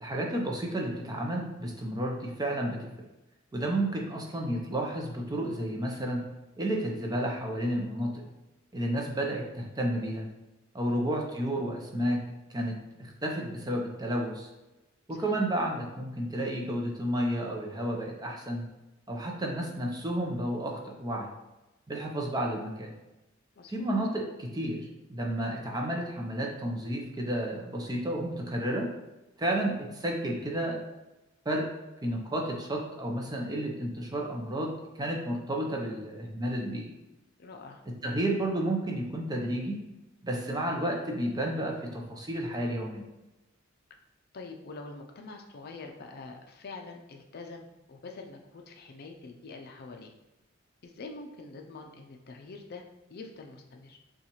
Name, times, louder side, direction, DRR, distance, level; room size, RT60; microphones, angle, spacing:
voice 1, 0.0-2.9 3.5-6.3 6.6-8.2 8.7-10.3 10.7-12.2 12.5-14.5 15.1-18.7 19.1-21.3 21.9-22.9 23.7-28.9 29.4-30.8 31.4-31.7 32.0-34.7 35.0-36.9 37.9-39.8 40.2-43.0, right 1 dB, 20° right, 0 dB, 0.6 m, -31 dB
voice 2, 15.1-15.4 23.6-23.9 37.4-37.8 44.3-50.1 50.8-52.8 53.1-54.0, left 3 dB, 50° left, 3 dB, 0.5 m, -45 dB
6.8 x 2.4 x 3.0 m, 1.0 s
head